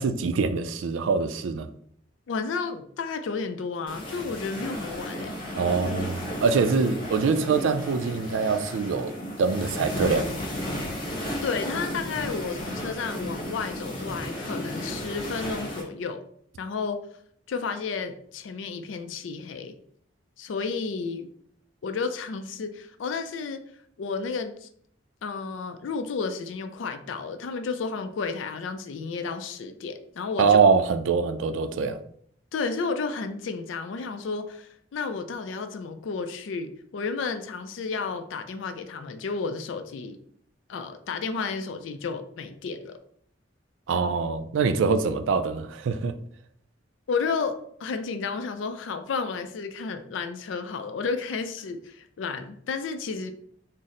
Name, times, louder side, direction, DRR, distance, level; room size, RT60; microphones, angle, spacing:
voice 1, 0.0-1.7 5.6-10.3 30.4-32.0 43.9-46.2, right 5 dB, 90° right, 0.4 m, -24 dB
voice 2, 2.3-5.4 11.4-16.2 16.6-17.0 17.5-19.8 20.4-21.3 21.8-23.6 24.0-24.7 25.2-30.6 32.5-40.2 40.7-43.0 47.1-53.3, left 4 dB, 80° left, 0.4 m, -32 dB
sound 1, 3.9-15.8, equal, 25° left, 1.1 m, -34 dB
3.7 x 2.0 x 4.1 m
head